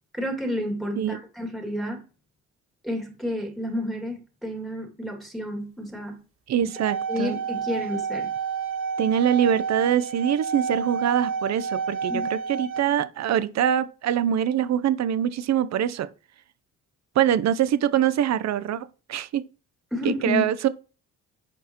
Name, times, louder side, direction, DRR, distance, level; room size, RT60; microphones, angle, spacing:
voice 1, 0.1-2.0 2.8-6.2 7.1-8.3 12.1-12.3 19.9-20.4, left 1 dB, ahead, 2.4 m, -30 dB
voice 2, 6.5-7.4 9.0-16.1 17.2-19.4 20.0-20.7, right 10 dB, 60° right, 0.7 m, -24 dB
sound 1, 6.6-12.8, right 6 dB, 45° right, 2.1 m, -30 dB
11.0 x 4.6 x 3.0 m
cardioid pair, 90°, 30 cm